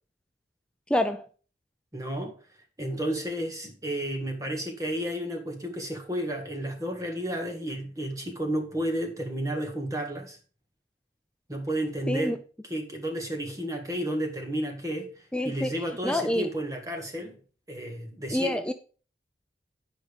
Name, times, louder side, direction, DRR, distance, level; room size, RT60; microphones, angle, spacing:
voice 1, 0.9-1.3 12.1-12.4 15.3-15.7 16.0-16.5 18.3-18.7, left 1 dB, 5° left, 0.4 m, -27 dB
voice 2, 1.9-2.4 2.8-10.4 11.5-12.4 12.6-17.4 17.7-18.6, right 1 dB, 20° right, 1.7 m, -32 dB
10.5 x 5.2 x 5.1 m
head